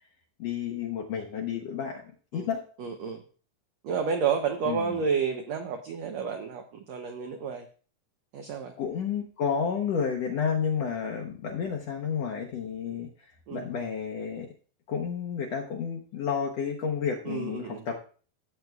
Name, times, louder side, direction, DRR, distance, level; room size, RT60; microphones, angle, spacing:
voice 1, 0.4-2.0 2.3-2.6 4.7-5.0 8.8-14.5 14.9-18.0, left 7 dB, 70° left, 1 dB, 1.5 m, -31 dB
voice 2, 2.8-3.2 3.8-7.7 8.3-8.7 13.5-13.6 17.2-17.8, right 6 dB, 85° right, 5 dB, 1.5 m, -30 dB
15.0 x 7.8 x 2.3 m, 0.41 s
omnidirectional pair, 4.0 m